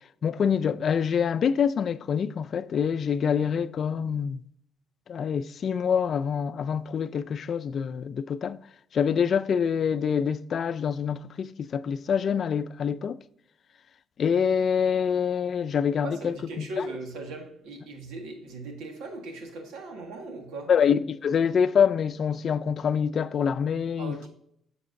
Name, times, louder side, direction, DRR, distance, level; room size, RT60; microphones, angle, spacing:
voice 1, 0.2-4.4 5.1-8.6 8.9-13.2 14.2-16.9 20.7-24.3, left 7 dB, 55° left, 0.4 m, -26 dB
voice 2, 16.0-20.7 24.0-24.3, right 2 dB, 90° right, 1.6 m, -38 dB
7.6 x 6.6 x 2.6 m
cardioid pair, 90°, 0 cm